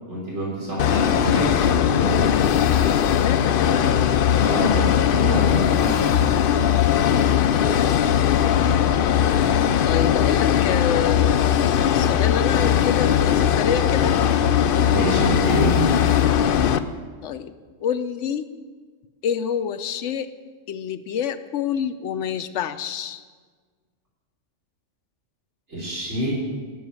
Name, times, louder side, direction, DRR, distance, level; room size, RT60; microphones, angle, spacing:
voice 1, 0.1-2.3 4.4-6.3 14.8-15.9 25.7-26.3, equal, 65° right, -5 dB, 3.8 m, -26 dB
sound 1, 0.8-16.8, left 9 dB, 60° left, 0.6 m, -19 dB
voice 2, 3.1-4.0 9.8-11.6 11.9-14.1 17.2-17.5 17.8-18.6 19.2-20.3 20.7-23.2, left 8 dB, 75° left, 11 dB, 1.0 m, -27 dB
12.0 x 7.0 x 9.5 m, 1.5 s
omnidirectional pair, 1.3 m